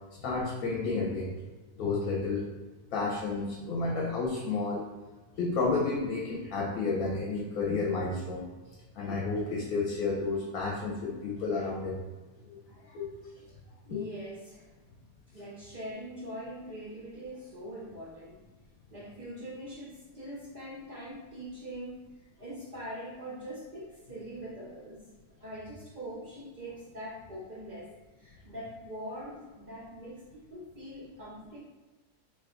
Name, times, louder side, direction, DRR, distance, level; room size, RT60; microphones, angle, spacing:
voice 1, 0.2-1.3 1.8-2.4 2.9-4.9 5.4-8.4 8.9-12.0 12.4-12.6 12.8-13.3 13.9-14.1, left 3 dB, 70° left, -2 dB, 1.0 m, -31 dB
voice 2, 13.9-14.7 15.3-18.4 18.9-25.1 25.4-27.9 28.2-31.6, equal, 65° right, -5 dB, 0.4 m, -43 dB
2.9 x 2.3 x 3.5 m, 1.2 s
omnidirectional pair, 1.7 m